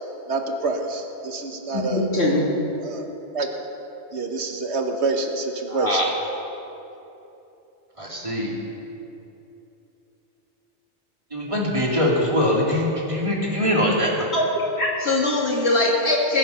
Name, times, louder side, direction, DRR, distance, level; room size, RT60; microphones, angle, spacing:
voice 1, 0.3-2.1 2.8-3.1 3.3-3.5 4.1-6.0, right 3 dB, 75° right, 4 dB, 1.4 m, -27 dB
voice 2, 1.7-2.5 14.3-14.4 14.8-16.4, left 2 dB, 65° left, -4 dB, 2.7 m, -21 dB
voice 3, 5.7-6.1 8.0-8.5 11.3-14.1, left 1 dB, 30° right, -3 dB, 2.5 m, -22 dB
20.0 x 9.0 x 5.6 m, 2.9 s
omnidirectional pair, 1.2 m